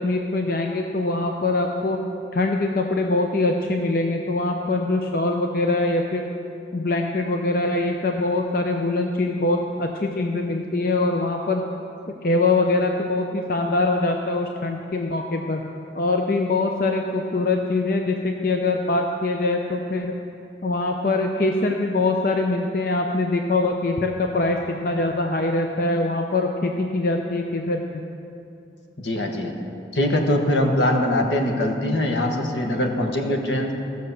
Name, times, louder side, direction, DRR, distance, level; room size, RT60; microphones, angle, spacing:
voice 1, 0.0-2.0 2.3-6.2 6.7-11.6 12.2-15.6 15.9-20.1 20.6-27.8, left 2 dB, 50° left, 3 dB, 0.6 m, -23 dB
voice 2, 29.0-29.5 29.9-33.7, left 1 dB, 80° left, 2 dB, 1.4 m, -22 dB
15.5 x 6.5 x 6.8 m, 2.7 s
head